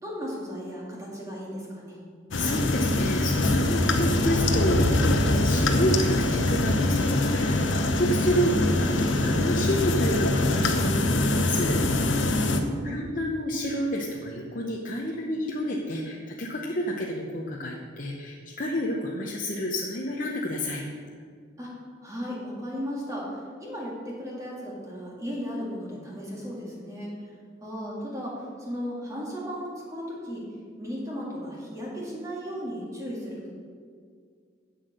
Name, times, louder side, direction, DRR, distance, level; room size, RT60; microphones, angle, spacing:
voice 1, 0.0-2.0 12.4-13.2 21.6-21.7 22.0-27.1 27.6-30.4 30.8-33.5, equal, 15° right, -4 dB, 2.0 m, -35 dB
sound 1, 2.3-12.6, left 2 dB, 70° left, 0.9 m, -23 dB
voice 2, 2.4-4.9 5.4-12.4 12.8-20.8, equal, 40° left, -1 dB, 0.8 m, -29 dB
8.1 x 7.7 x 6.7 m, 2.1 s
head